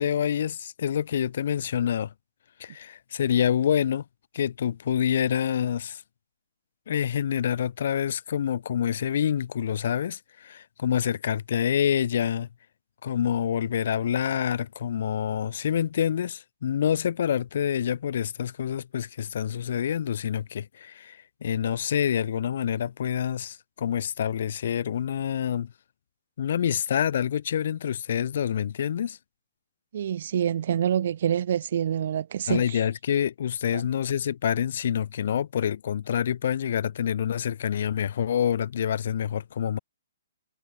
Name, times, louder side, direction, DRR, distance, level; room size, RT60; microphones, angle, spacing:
voice 1, 0.0-2.1 2.6-4.0 4.3-6.0 6.9-12.5 13.0-25.7 26.4-29.2 32.5-39.8, left 9 dB, 45° left, 1.5 m, -27 dB
voice 2, 29.9-32.8 33.7-33.8, right 9 dB, 45° right, 0.9 m, -26 dB
hypercardioid pair, 175°, 0 cm